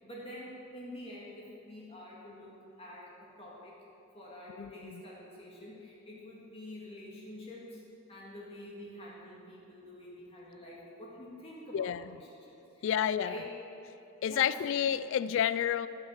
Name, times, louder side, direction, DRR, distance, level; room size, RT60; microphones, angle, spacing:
voice 1, 0.0-3.8 4.1-7.8 8.1-13.5 14.2-14.6, left 1 dB, 30° left, -5 dB, 2.0 m, -47 dB
voice 2, 4.6-5.0 11.7-12.1 12.8-13.4 14.2-15.9, left 9 dB, 65° left, 15 dB, 0.3 m, -30 dB
14.5 x 6.2 x 7.5 m, 2.9 s
head